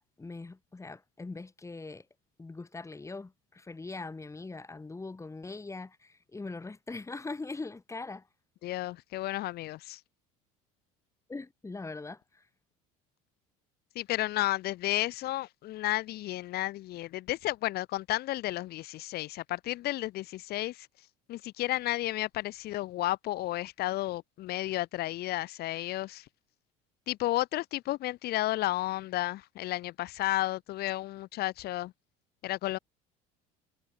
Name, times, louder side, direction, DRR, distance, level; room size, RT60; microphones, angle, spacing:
voice 1, 0.0-2.1 2.4-8.3 11.3-12.5, left 3 dB, 15° left, 5.4 m, -41 dB
voice 2, 8.6-10.0 14.0-20.9 21.3-26.3 27.1-31.9 32.4-32.8, left 16 dB, 60° left, 5.6 m, -32 dB
supercardioid pair, 85°, 18 cm